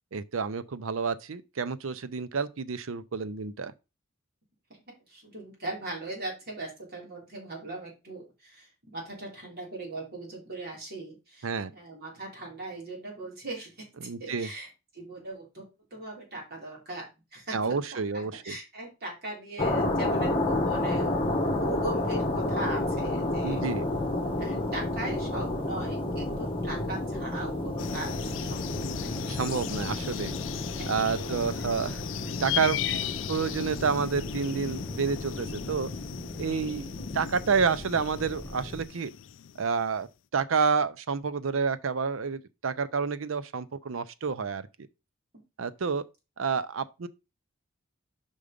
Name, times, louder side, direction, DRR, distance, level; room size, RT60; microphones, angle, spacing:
voice 1, 0.1-3.7 11.4-11.7 14.0-14.5 17.5-18.6 23.4-23.9 29.3-30.3 30.9-32.0 32.4-32.9 33.3-35.9 36.4-39.1 39.6-40.1 40.3-44.7 45.6-46.0 46.4-47.1, right 5 dB, 75° right, 0.6 m, -29 dB
voice 2, 5.1-14.7 14.9-15.7 15.9-21.1 21.6-23.6 24.4-29.2 30.8-31.3 32.8-33.0 37.1-37.2, right 2 dB, 50° right, 3.6 m, -39 dB
sound 1, 19.6-38.8, left 1 dB, 25° left, 1.2 m, -31 dB
sound 2, 27.8-39.9, left 9 dB, 65° left, 0.4 m, -37 dB
5.4 x 4.8 x 5.1 m
head